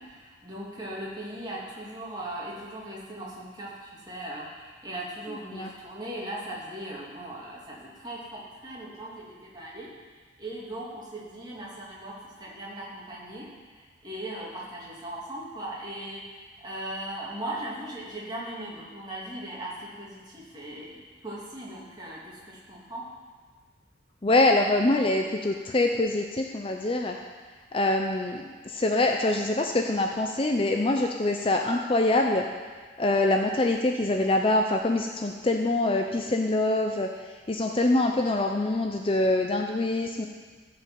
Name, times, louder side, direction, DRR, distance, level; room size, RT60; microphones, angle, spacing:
voice 1, 0.0-9.9 10.4-13.5 13.7-21.0 21.2-23.1, right 1 dB, 20° right, -5 dB, 2.6 m, -38 dB
voice 2, 24.2-27.2 27.7-32.5 33.0-37.1 37.5-40.3, left 2 dB, 25° left, 3 dB, 0.5 m, -24 dB
15.0 x 5.3 x 7.6 m, 1.5 s
head